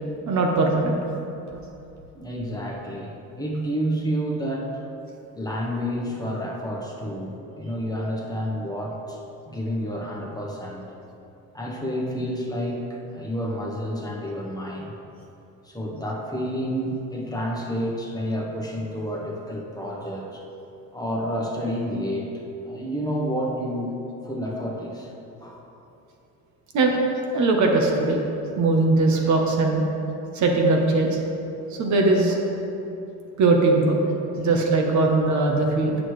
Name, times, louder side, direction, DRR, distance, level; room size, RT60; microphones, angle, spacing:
voice 1, 0.3-1.0 26.7-27.0 27.3-28.2 28.6-29.8 30.3-31.2 31.7-32.4 33.4-34.0 34.4-36.0, right 3 dB, 55° right, 1 dB, 1.0 m, -20 dB
voice 2, 2.1-4.8 5.3-9.2 9.5-10.8 11.5-14.9 15.6-20.4 20.9-25.1 25.4-25.6, equal, 10° left, -3 dB, 1.1 m, -29 dB
7.6 x 6.3 x 3.2 m, 2.8 s
supercardioid pair, 85°, 35 cm